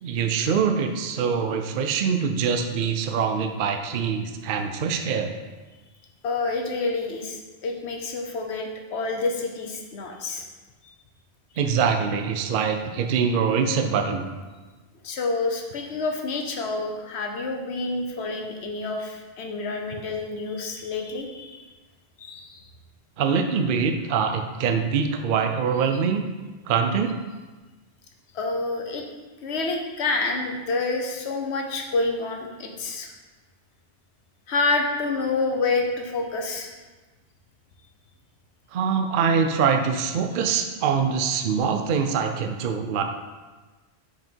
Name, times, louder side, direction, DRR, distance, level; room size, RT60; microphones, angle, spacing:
voice 1, 0.0-5.3 11.6-14.3 23.2-26.2 26.7-27.1 38.7-43.0, right 6 dB, 60° right, 5 dB, 0.7 m, -24 dB
voice 2, 6.2-10.4 10.8-10.9 15.0-21.7 22.2-22.6 28.3-29.0 29.4-33.2 34.5-36.7, left 3 dB, 80° left, 3 dB, 1.1 m, -28 dB
6.0 x 5.0 x 4.4 m, 1.2 s
omnidirectional pair, 1.1 m